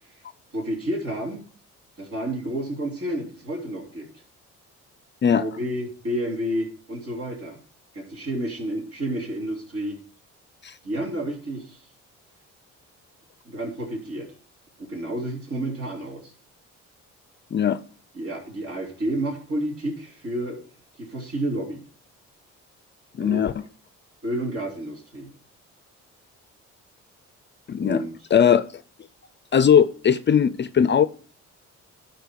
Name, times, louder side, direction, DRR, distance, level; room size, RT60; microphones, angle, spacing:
voice 1, 0.5-1.4 2.0-4.1 5.4-7.6 7.9-10.0 10.8-11.8 13.5-14.3 14.8-16.3 18.2-20.6 21.0-21.8 23.2-23.5 24.2-25.3 27.8-28.1, right 1 dB, 50° right, 3.4 m, -30 dB
voice 2, 23.2-23.5 27.7-28.0 28.3-28.7 29.5-31.1, left 8 dB, 35° left, 0.5 m, -19 dB
12.0 x 4.5 x 4.6 m
cardioid pair, 90°, 30 cm